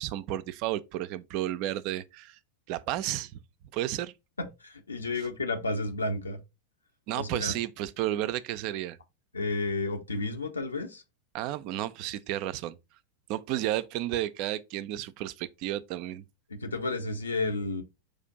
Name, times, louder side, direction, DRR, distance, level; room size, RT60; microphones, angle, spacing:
voice 1, 0.0-2.4 2.7-3.3 3.7-4.1 5.2-5.3 7.1-9.0 11.3-12.8 13.3-16.2, right 13 dB, 45° right, 0.3 m, -32 dB
voice 2, 4.4-6.4 7.1-7.5 9.3-11.0 16.5-17.8, left 2 dB, 75° left, 0.7 m, -32 dB
4.8 x 2.5 x 3.9 m
figure-of-eight pair, 90°, 0 cm